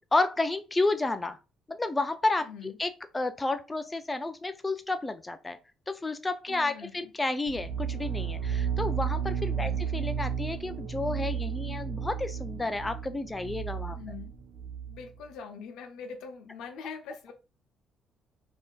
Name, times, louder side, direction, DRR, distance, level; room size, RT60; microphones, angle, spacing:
voice 1, 0.1-1.4 1.7-5.6 5.9-14.0, left 2 dB, 20° left, 0.3 m, -31 dB
voice 2, 2.4-2.8 6.5-7.1 9.5-9.8 13.9-14.3 14.9-17.3, left 6 dB, 80° left, 0.6 m, -43 dB
sound 1, 7.5-15.1, right 7 dB, 75° right, 0.9 m, -33 dB
3.5 x 2.6 x 2.3 m
cardioid pair, 85°, 0 cm